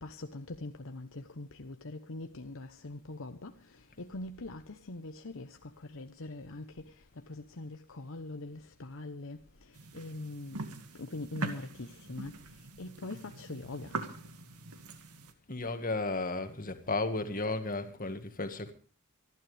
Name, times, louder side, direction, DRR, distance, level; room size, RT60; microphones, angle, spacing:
voice 1, 0.0-3.5 4.0-6.9 7.3-9.4 9.9-10.6 11.0-12.3 12.8-13.9, left 2 dB, 60° left, 1.0 m, -42 dB
sound 1, 9.7-15.3, right 3 dB, 90° right, 2.2 m, -42 dB
voice 2, 15.5-18.7, left 2 dB, 40° left, 2.0 m, -34 dB
26.0 x 12.0 x 3.4 m
head